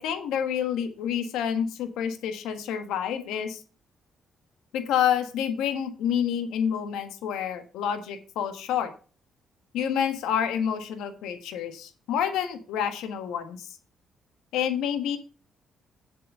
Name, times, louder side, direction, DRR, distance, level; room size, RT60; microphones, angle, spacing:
voice 1, 0.0-3.6 4.7-8.9 9.7-13.7 14.5-15.2, left 8 dB, 90° left, 8 dB, 1.6 m, -28 dB
7.8 x 7.4 x 5.4 m, 0.36 s
cardioid pair, 90°, 0 cm